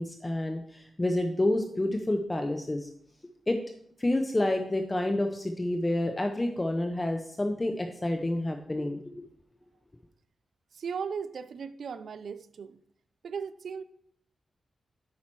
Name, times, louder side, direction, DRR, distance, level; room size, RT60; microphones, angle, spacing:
voice 1, 0.0-2.9 3.5-3.6 4.0-9.3, left 1 dB, 20° left, 0.7 m, -29 dB
voice 2, 10.7-12.8 13.2-13.8, right 6 dB, 75° right, 0.4 m, -37 dB
8.6 x 5.7 x 4.6 m
cardioid pair, 85°, 0 cm